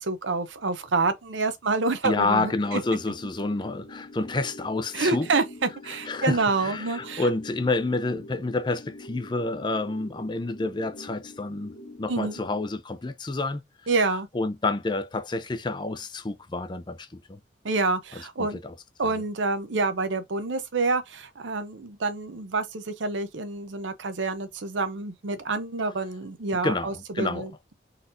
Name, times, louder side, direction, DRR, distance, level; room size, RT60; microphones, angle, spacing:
voice 1, 0.0-2.8 4.9-7.2 12.1-12.3 13.9-14.3 17.6-18.6 19.0-27.7, right 3 dB, 80° right, 0.7 m, -27 dB
voice 2, 2.0-5.3 6.0-11.7 12.0-13.6 14.1-17.4 18.1-18.7 19.0-19.1 26.6-27.5, left 2 dB, 25° left, 0.4 m, -29 dB
sound 1, 2.6-12.6, left 1 dB, 50° left, 1.0 m, -45 dB
4.1 x 4.0 x 2.6 m
head